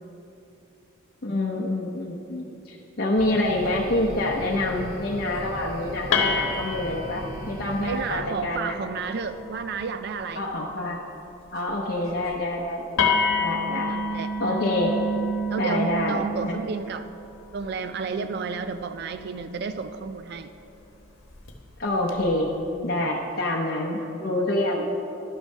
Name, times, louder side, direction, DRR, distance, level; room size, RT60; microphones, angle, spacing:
voice 1, 1.2-8.8 10.4-11.0 11.5-13.0 13.4-14.0 14.4-15.0 15.6-16.6 21.8-22.5 22.8-24.9, left 1 dB, 45° left, -2 dB, 0.7 m, -27 dB
sound 1, 3.1-8.2, equal, 75° right, 1.4 m, -38 dB
sound 2, 3.8-4.3 5.1-5.5 6.1-10.4 12.1-12.3 12.5-12.6 13.0-20.0 21.3-21.5 22.1-22.6, left 2 dB, 75° left, 1.0 m, -30 dB
voice 2, 7.8-10.4 13.9-14.3 15.5-17.1 17.5-20.5 23.9-24.1, right 5 dB, 50° right, 10 dB, 0.3 m, -32 dB
11.5 x 6.1 x 5.4 m, 2.8 s
head